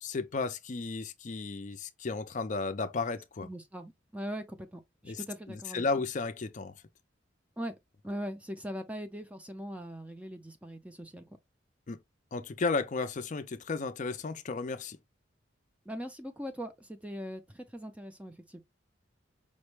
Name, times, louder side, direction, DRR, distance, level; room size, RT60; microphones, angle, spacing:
voice 1, 0.0-3.5 5.0-5.2 5.5-6.7 11.9-12.0 12.3-15.0, left 4 dB, 40° left, 0.5 m, -34 dB
voice 2, 3.4-5.9 7.6-7.7 8.0-11.4 15.9-18.6, equal, 5° right, 0.5 m, -41 dB
5.2 x 2.2 x 3.1 m
head